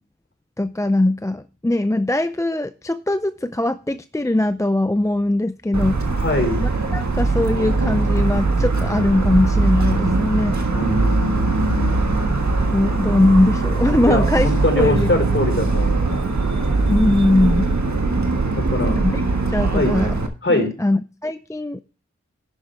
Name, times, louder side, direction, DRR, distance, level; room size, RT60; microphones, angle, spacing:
voice 1, 0.6-6.0 6.6-10.6 12.7-14.5 14.8-15.1 16.9-17.7 18.8-19.2 19.5-20.1 20.5-21.8, left 1 dB, 10° left, 0.5 m, -20 dB
Motor vehicle (road) / Siren, 5.7-20.3, right 3 dB, 75° right, 1.6 m, -20 dB
voice 2, 6.1-6.6 10.7-12.1 14.1-16.2 18.5-19.0 19.7-19.9 20.4-20.7, left 1 dB, 45° left, 4.3 m, -22 dB
11.5 x 8.9 x 3.3 m
wide cardioid pair, 85°, 29 cm